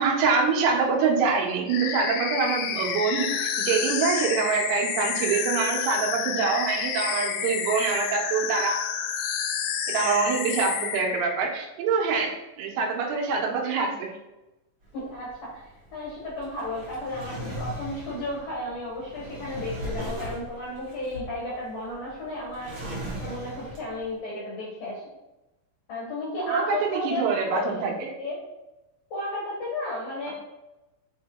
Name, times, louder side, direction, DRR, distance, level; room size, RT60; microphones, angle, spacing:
voice 1, 0.0-8.8 9.9-12.3 12.6-14.1 26.5-26.8 27.0-28.1 30.3-30.4, right 5 dB, 85° right, 1 dB, 3.7 m, -25 dB
sound 1, 1.7-11.3, left 8 dB, 90° left, 2.5 m, -29 dB
Drawer open or close, 14.8-24.1, right 1 dB, 55° right, 1.3 m, -38 dB
voice 2, 14.9-25.0 25.9-27.8 28.2-28.4 29.1-30.3, left 1 dB, 65° left, -6 dB, 2.4 m, -33 dB
7.1 x 4.5 x 2.9 m, 0.98 s
omnidirectional pair, 6.0 m